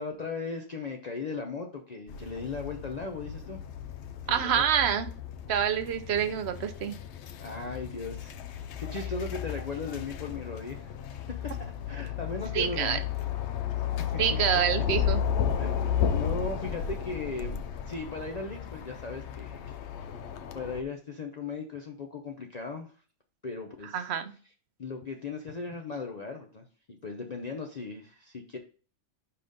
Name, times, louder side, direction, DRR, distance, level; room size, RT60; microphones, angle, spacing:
voice 1, 0.0-3.6 4.4-4.7 7.4-10.9 11.3-13.0 14.0-14.1 15.6-19.8 20.5-22.9 23.4-24.1 24.8-28.6, left 4 dB, 40° left, 2 dB, 0.6 m, -37 dB
sound 1, 2.1-20.8, left 8 dB, 70° left, 0.9 m, -33 dB
voice 2, 4.3-5.1 5.5-6.9 12.5-13.0 14.2-15.2 23.9-24.3, right 8 dB, 60° right, 9 dB, 0.9 m, -27 dB
5.4 x 4.2 x 5.0 m, 0.39 s
omnidirectional pair, 1.3 m